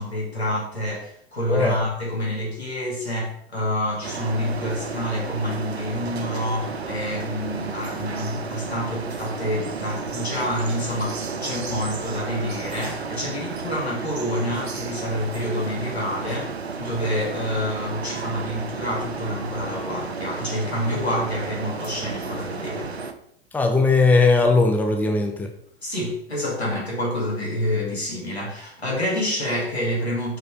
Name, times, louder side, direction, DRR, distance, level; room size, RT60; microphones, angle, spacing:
voice 1, 0.0-16.5 16.8-22.9 25.8-30.4, left 1 dB, 85° left, -3 dB, 3.1 m, -28 dB
voice 2, 1.5-1.8 23.5-25.5, left 3 dB, 5° left, 3 dB, 0.9 m, -19 dB
sound 1, 4.0-23.1, right 4 dB, 80° right, 0.8 m, -32 dB
6.1 x 5.3 x 5.2 m, 0.67 s
figure-of-eight pair, 95°, 31 cm